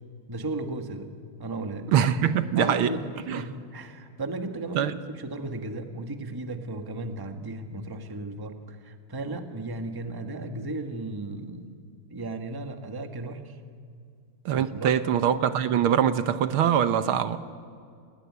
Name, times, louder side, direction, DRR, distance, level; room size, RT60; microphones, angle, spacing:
voice 1, 0.3-1.1 1.4-1.9 2.6-11.8 12.1-13.6 14.5-14.9, right 2 dB, 10° right, 1.2 m, -35 dB
voice 2, 1.9-2.9 3.3-3.4 4.7-4.9 14.4-17.4, right 9 dB, 70° right, 1.7 m, -23 dB
29.5 x 19.5 x 9.5 m
omnidirectional pair, 2.4 m